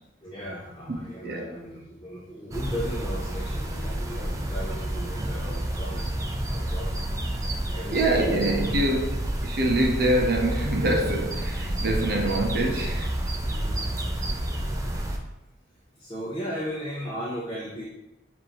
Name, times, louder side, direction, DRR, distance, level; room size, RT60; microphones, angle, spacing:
voice 1, 0.2-7.1 7.7-8.4 13.5-13.9 16.0-17.8, equal, 25° left, 0.6 m, -36 dB
voice 2, 1.2-1.5 7.9-13.1, right 1 dB, 50° right, 0.7 m, -25 dB
sound 1, 2.5-15.2, right 1 dB, 15° right, 0.4 m, -30 dB
6.6 x 2.6 x 2.9 m
head